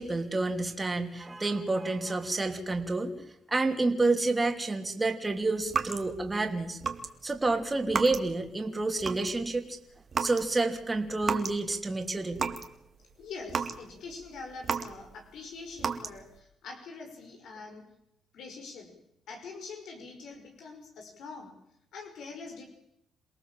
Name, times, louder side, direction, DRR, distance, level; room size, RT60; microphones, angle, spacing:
voice 1, 0.0-3.2 3.5-6.8 7.2-9.8 10.2-12.5, right 3 dB, 20° right, 5 dB, 3.1 m, -29 dB
sound 1, 5.6-6.4 6.8-7.1 7.4-8.5 8.8-9.5 10.1-10.5 10.8-11.6 12.0-12.7 13.1-15.3 15.8-16.4, right 5 dB, 45° right, 2.2 m, -33 dB
voice 2, 13.2-17.8 18.3-19.0 19.3-21.5 21.9-22.6, left 4 dB, 75° left, 3 dB, 5.5 m, -44 dB
28.0 x 18.5 x 7.6 m, 0.79 s
cardioid pair, 90°, 0 cm